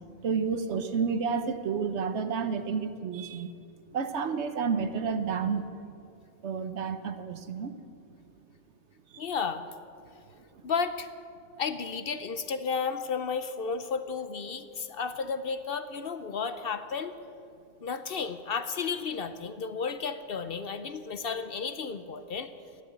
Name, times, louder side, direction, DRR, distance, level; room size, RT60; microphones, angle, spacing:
voice 1, 0.2-3.5 3.9-5.7 6.4-7.8, right 6 dB, 70° right, 10 dB, 1.1 m, -30 dB
voice 2, 9.2-9.6 10.6-11.1 11.6-17.1 17.8-22.5, left 5 dB, 55° left, 10 dB, 0.8 m, -33 dB
13.0 x 11.0 x 8.7 m, 2.5 s
omnidirectional pair, 1.3 m